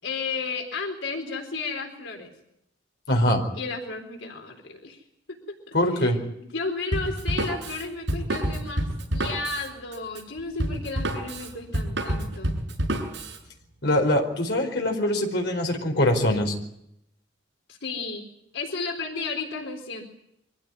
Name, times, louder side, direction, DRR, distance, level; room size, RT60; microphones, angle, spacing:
voice 1, 0.0-2.3 3.5-5.0 5.7-6.1 6.4-12.6 17.8-18.3 18.5-20.0, left 4 dB, 90° left, 3 dB, 4.2 m, -33 dB
voice 2, 3.1-3.4 5.7-6.2 13.8-16.5, left 1 dB, 65° left, 2 dB, 4.7 m, -23 dB
Drum kit, 6.9-13.4, right 1 dB, 75° right, 7.1 m, -28 dB
24.5 x 16.0 x 9.5 m, 0.79 s
head